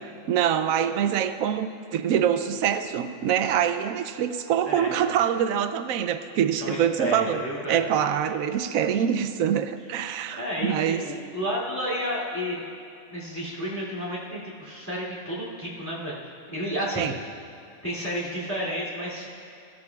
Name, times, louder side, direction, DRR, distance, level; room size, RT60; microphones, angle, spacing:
voice 1, 0.3-7.4 7.7-11.1 17.0-17.2, right 9 dB, 85° right, 10 dB, 1.0 m, -25 dB
voice 2, 4.6-5.0 6.6-7.8 10.4-10.7 11.0-12.7 13.1-16.2 16.5-17.1 17.8-19.3, equal, 10° left, -7 dB, 2.6 m, -31 dB
16.0 x 12.0 x 2.3 m, 2.6 s
omnidirectional pair, 1.4 m